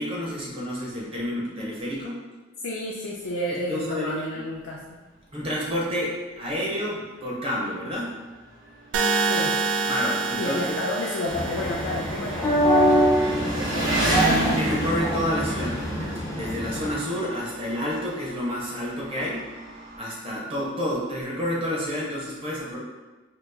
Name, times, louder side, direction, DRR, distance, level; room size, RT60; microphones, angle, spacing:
voice 1, 0.0-2.2 3.5-4.2 5.3-8.1 9.8-10.6 14.6-19.4 20.0-22.8, equal, 30° right, -4 dB, 0.7 m, -29 dB
voice 2, 2.6-4.8 9.2-9.6 10.4-14.3, left 1 dB, 80° left, -4 dB, 0.4 m, -31 dB
Engine, 5.4-5.5 5.9-6.0 7.0-7.1 7.3-20.0, right 1 dB, 90° right, 1.0 m, -32 dB
sound 1, 8.9-13.0, right 4 dB, 70° right, 0.3 m, -27 dB
sound 2, 11.3-16.9, equal, 15° left, 0.4 m, -24 dB
2.9 x 2.3 x 3.5 m, 1.2 s
head